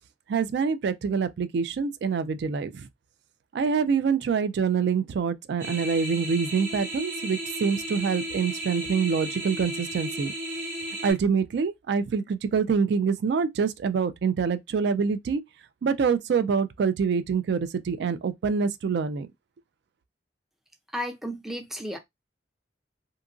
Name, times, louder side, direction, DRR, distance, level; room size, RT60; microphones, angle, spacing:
voice 1, 0.3-2.9 3.5-10.3 11.0-15.4 15.8-19.3, right 6 dB, 65° right, 0.3 m, -26 dB
sound 1, 5.6-11.1, right 1 dB, 45° right, 1.0 m, -34 dB
voice 2, 20.9-22.0, equal, ahead, 0.4 m, -33 dB
2.7 x 2.4 x 2.4 m
head